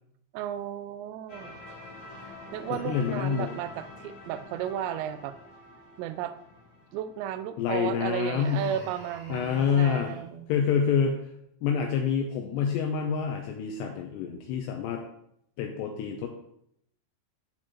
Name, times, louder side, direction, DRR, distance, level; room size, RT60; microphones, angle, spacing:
voice 1, 0.3-1.6 2.5-5.3 6.0-6.3 6.9-10.5, right 11 dB, 85° right, 11 dB, 2.5 m, -34 dB
sound 1, 1.3-8.0, left 2 dB, 50° left, 2.3 m, -47 dB
voice 2, 2.7-3.5 7.6-8.6 9.3-10.1 10.5-11.2 11.6-15.0 15.6-16.3, left 7 dB, 85° left, 3 dB, 2.5 m, -27 dB
Human voice, 8.4-10.2, right 1 dB, 45° right, 3.1 m, -44 dB
11.5 x 4.5 x 2.9 m, 0.74 s
omnidirectional pair, 5.5 m